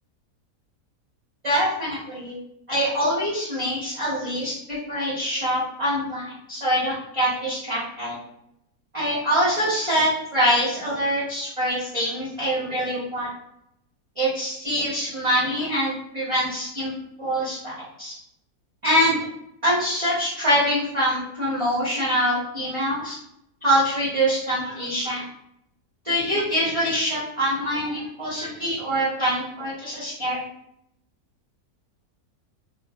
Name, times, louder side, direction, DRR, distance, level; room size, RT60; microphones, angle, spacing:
voice 1, 1.4-2.4 2.7-8.2 8.9-13.3 14.2-16.9 17.2-18.1 18.8-19.2 19.6-23.2 23.6-25.2 26.0-30.4, equal, 30° right, -8 dB, 0.6 m, -24 dB
2.5 x 2.3 x 3.2 m, 0.76 s
omnidirectional pair, 1.6 m